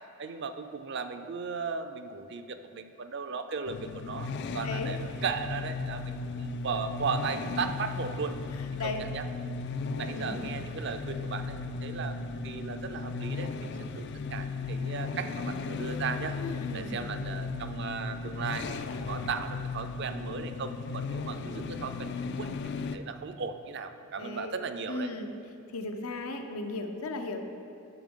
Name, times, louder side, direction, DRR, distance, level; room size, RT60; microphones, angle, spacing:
voice 1, 0.2-8.4 8.8-9.2 9.9-12.2 12.4-13.7 13.9-16.4 16.7-25.1, right 5 dB, 50° right, 8 dB, 0.4 m, -36 dB
sound 1, 3.6-23.0, left 4 dB, 50° left, 0.3 m, -36 dB
voice 2, 8.6-9.0 10.1-10.4 16.4-17.0 24.2-24.5 24.9-25.3 25.7-27.4, left 3 dB, 80° left, 5 dB, 0.7 m, -36 dB
10.5 x 6.9 x 3.7 m, 2.6 s
head